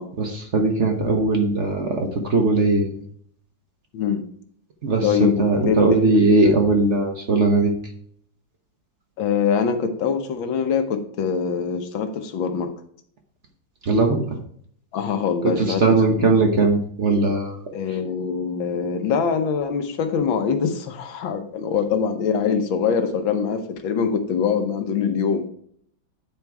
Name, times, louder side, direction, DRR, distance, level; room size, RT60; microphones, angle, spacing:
voice 1, 0.2-2.9 4.8-7.7 13.8-14.2 15.6-17.6, right 3 dB, 45° right, 3 dB, 1.1 m, -19 dB
voice 2, 3.9-4.2 5.0-6.6 9.2-12.7 14.9-16.4 17.7-25.5, left 6 dB, 80° left, 7 dB, 1.7 m, -24 dB
9.4 x 4.4 x 4.6 m, 0.62 s
omnidirectional pair, 2.1 m